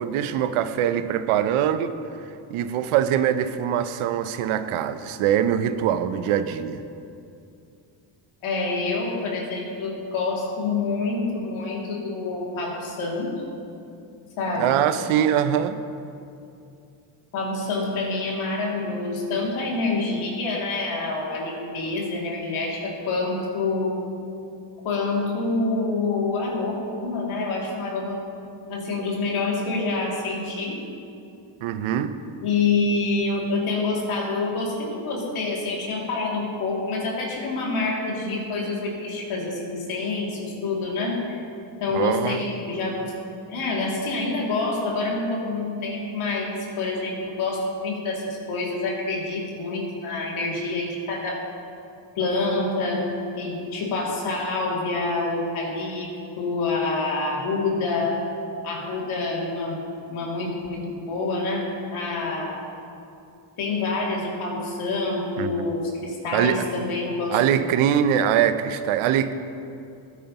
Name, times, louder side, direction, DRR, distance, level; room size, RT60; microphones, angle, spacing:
voice 1, 0.0-2.0 2.5-6.8 14.6-15.8 31.6-32.1 41.9-42.4 65.4-65.7 66.3-66.7 67.3-69.3, right 9 dB, 80° right, 11 dB, 0.7 m, -23 dB
voice 2, 8.4-13.4 14.4-14.8 17.3-24.0 24.8-26.8 27.0-28.3 28.7-30.8 32.4-41.2 41.8-43.1 43.5-51.4 52.2-58.2 58.6-59.8 60.1-62.6 63.6-67.4, left 3 dB, 80° left, -3 dB, 2.6 m, -27 dB
15.0 x 9.3 x 2.9 m, 2.6 s
supercardioid pair, 70°, 49 cm